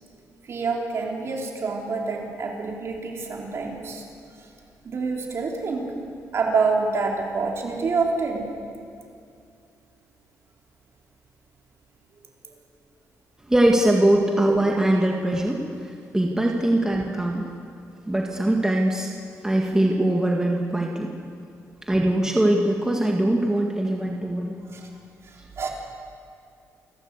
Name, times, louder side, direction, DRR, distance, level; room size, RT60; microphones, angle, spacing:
voice 1, 0.4-4.0 4.8-5.9 6.3-8.4 24.7-24.9 25.6-25.7, right 4 dB, 50° right, 0 dB, 4.0 m, -26 dB
voice 2, 13.5-15.6 16.1-17.5 18.0-19.1 19.4-21.1 21.9-24.6, right 1 dB, 10° right, 0 dB, 1.9 m, -21 dB
28.0 x 12.5 x 8.3 m, 2.4 s
cardioid pair, 110°, 6 cm